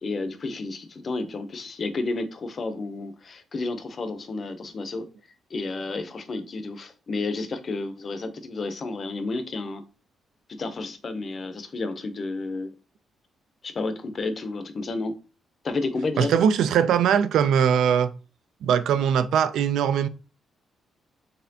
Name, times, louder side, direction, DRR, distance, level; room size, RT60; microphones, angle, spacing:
voice 1, 0.0-5.1 5.5-9.8 10.5-12.7 13.6-15.1 15.6-16.3, left 3 dB, 35° left, 0.6 m, -31 dB
voice 2, 16.2-18.1 18.6-20.1, right 8 dB, 85° right, 0.3 m, -21 dB
4.2 x 3.3 x 2.7 m
cardioid pair, 160°, 0 cm